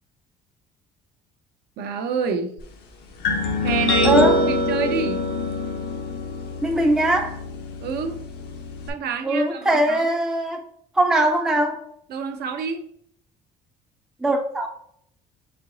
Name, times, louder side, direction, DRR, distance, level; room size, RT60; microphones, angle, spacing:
voice 1, 1.8-2.5 3.6-5.3 7.8-8.2 8.9-10.1 12.1-12.9, right 6 dB, 60° right, 6 dB, 0.6 m, -28 dB
sound 1, 3.2-8.9, left 2 dB, 60° left, 0.8 m, -25 dB
voice 2, 4.0-4.4 6.6-7.4 9.2-10.7 10.9-11.8 14.2-14.7, right 1 dB, 5° right, 2 dB, 0.5 m, -21 dB
4.2 x 3.8 x 2.6 m, 0.67 s
cardioid pair, 125°, 19 cm